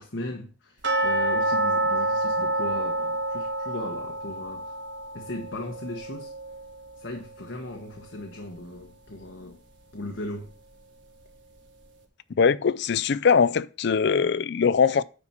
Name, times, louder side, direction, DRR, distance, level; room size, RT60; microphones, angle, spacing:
voice 1, 0.0-4.7 5.1-6.3 7.0-9.6 9.9-10.5, left 1 dB, 90° left, 1.2 m, -37 dB
sound 1, 0.8-7.7 8.0-8.1 8.6-8.7 9.2-9.3, right 2 dB, 70° right, 1.7 m, -28 dB
voice 2, 12.4-15.0, left 6 dB, 65° left, 0.4 m, -21 dB
10.0 x 4.6 x 5.8 m
head